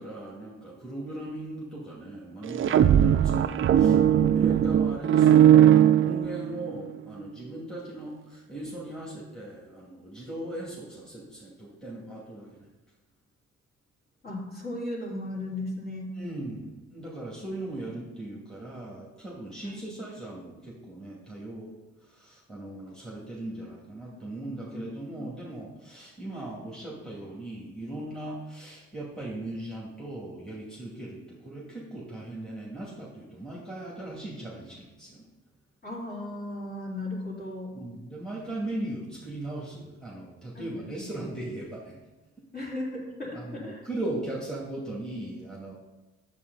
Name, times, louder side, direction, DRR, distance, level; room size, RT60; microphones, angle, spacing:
voice 1, 0.0-12.7 16.2-21.7 22.0-35.3 37.7-42.0 43.3-45.7, right 1 dB, ahead, -6 dB, 2.3 m, -38 dB
sound 1, 2.4-6.7, right 10 dB, 45° right, 0.4 m, -19 dB
voice 2, 14.2-16.1 19.6-19.9 24.7-25.3 35.8-37.7 40.6-41.1 42.5-43.8, left 1 dB, 30° left, -4 dB, 3.4 m, -36 dB
8.5 x 7.4 x 4.0 m, 1.1 s
cardioid pair, 90°, 30 cm